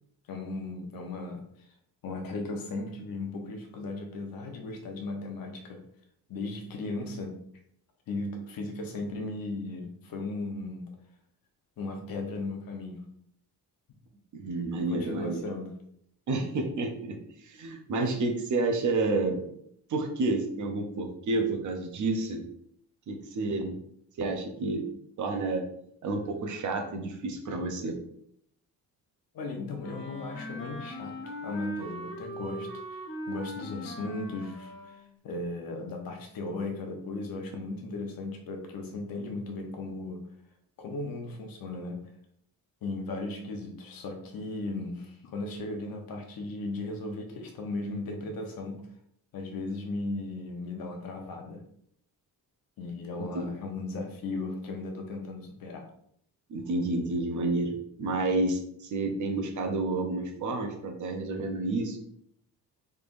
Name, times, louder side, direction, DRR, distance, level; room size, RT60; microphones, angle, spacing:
voice 1, 0.3-1.7 2.0-5.8 6.3-7.4 8.1-10.9 11.8-13.0 14.7-15.7 17.9-18.1 29.3-33.0 33.3-40.2 40.8-42.0 42.8-48.9 49.3-51.6 52.8-55.8, left 2 dB, 65° left, 3 dB, 0.8 m, -36 dB
voice 2, 14.3-15.4 16.3-17.2 17.4-19.5 19.9-22.4 23.1-23.8 24.2-24.8 25.2-25.6 26.0-28.0 53.2-53.5 56.5-62.0, right 2 dB, 50° right, 4 dB, 0.7 m, -30 dB
Wind instrument woodwind instrument, 29.8-35.0, equal, 30° left, 0.6 m, -40 dB
3.6 x 3.2 x 2.5 m, 0.69 s
cardioid pair, 180°, 37 cm